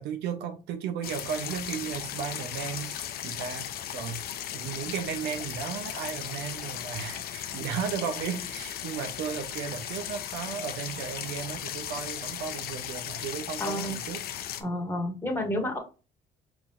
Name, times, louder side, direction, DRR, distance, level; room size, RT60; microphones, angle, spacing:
voice 1, 0.0-3.7 3.9-4.2 4.5-14.2, right 7 dB, 85° right, 8 dB, 0.8 m, -35 dB
sound 1, 1.0-14.6, left 10 dB, 65° left, 0.7 m, -37 dB
voice 2, 13.6-13.9 14.6-15.8, left 1 dB, 15° left, 1 dB, 1.6 m, -30 dB
4.8 x 3.9 x 2.5 m, 0.32 s
cardioid pair, 110°, 17 cm